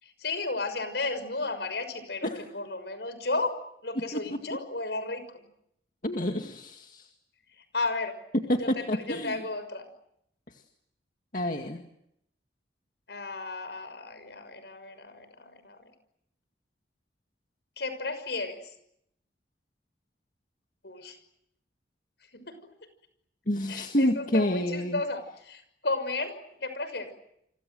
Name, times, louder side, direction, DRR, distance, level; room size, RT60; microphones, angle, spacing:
voice 1, 0.0-2.3 2.5-5.5 7.6-8.2 8.5-9.9 13.1-15.9 17.8-18.7 20.8-21.2 22.3-22.7 23.7-27.1, left 3 dB, 70° left, 11 dB, 6.1 m, -34 dB
voice 2, 4.1-4.6 6.0-7.1 8.3-9.4 10.5-10.6 11.3-11.8 23.5-25.0, left 1 dB, 45° left, 4 dB, 2.1 m, -28 dB
30.0 x 25.5 x 7.9 m, 0.75 s
head